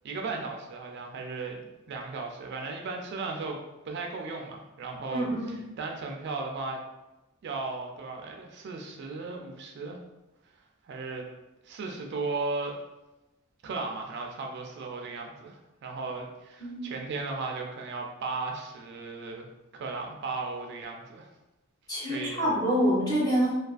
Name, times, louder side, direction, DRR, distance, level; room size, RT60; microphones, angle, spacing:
voice 1, 0.0-3.6 3.9-6.8 7.4-10.0 10.8-11.3 11.6-12.8 13.6-19.5 19.7-21.3 22.0-22.5, right 3 dB, 55° right, 2 dB, 0.3 m, -36 dB
voice 2, 5.1-5.6 16.6-16.8 21.9-23.5, equal, 20° left, -6 dB, 0.7 m, -26 dB
2.3 x 2.3 x 2.3 m, 1.0 s
head